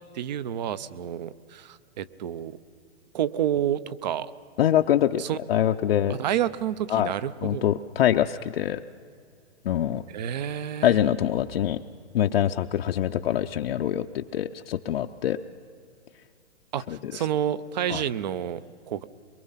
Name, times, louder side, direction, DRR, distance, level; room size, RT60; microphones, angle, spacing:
voice 1, 0.1-2.6 3.1-4.3 5.2-5.4 6.1-7.6 10.1-11.0 16.7-19.0, right 10 dB, 40° right, 17 dB, 0.6 m, -29 dB
voice 2, 4.6-6.2 6.9-7.1 7.4-8.8 9.6-10.0 10.8-11.8 12.1-15.4 16.9-17.1 17.9-18.0, left 11 dB, 55° left, 5 dB, 0.6 m, -24 dB
23.5 x 23.0 x 5.7 m, 2.3 s
hypercardioid pair, 160°, 35 cm